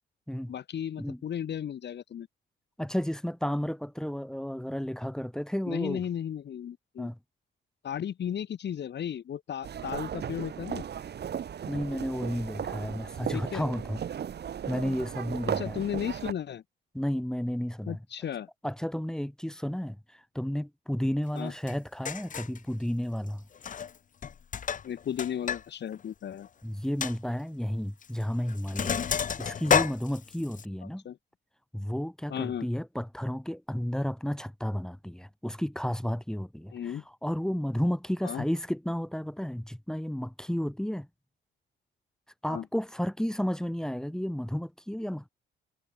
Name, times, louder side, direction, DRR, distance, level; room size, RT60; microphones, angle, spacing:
voice 1, 0.5-2.3 5.7-7.1 7.8-10.8 13.3-13.6 15.6-16.6 17.9-18.5 21.3-21.5 24.8-26.5 31.0-31.2 32.3-32.7 36.7-37.0 38.2-38.4 42.5-42.6, left 9 dB, 60° left, 3.4 m, -35 dB
voice 2, 2.8-6.1 7.0-7.2 11.7-14.0 14.7-15.9 16.9-18.0 18.6-23.4 26.6-29.0 29.4-31.0 31.7-41.1 42.4-45.3, equal, 5° left, 1.5 m, -32 dB
sound 1, 9.6-16.3, right 8 dB, 55° right, 3.2 m, -36 dB
Sink (filling or washing), 21.7-21.8 22.0-22.6 23.5-24.0 24.2-25.6 25.9-26.0 26.4-26.5 27.0-27.1 28.0-28.2 28.5-30.6, left 7 dB, 40° left, 0.9 m, -30 dB
cardioid pair, 90°, 20 cm